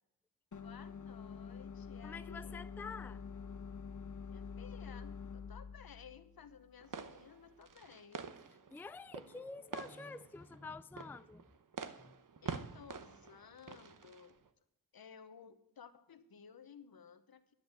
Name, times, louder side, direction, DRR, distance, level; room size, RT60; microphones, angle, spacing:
sound 1, 0.5-7.6, left 6 dB, 50° left, 1.4 m, -48 dB
voice 1, 0.6-2.7 4.3-8.3 12.4-14.4 14.9-17.5, left 7 dB, 70° left, 1.1 m, -56 dB
voice 2, 2.0-3.2 8.7-11.5 12.0-12.1, left 4 dB, 5° left, 0.4 m, -48 dB
sound 2, 6.8-14.5, right 6 dB, 55° right, 1.0 m, -48 dB
10.5 x 10.0 x 6.5 m
cardioid pair, 55°, 38 cm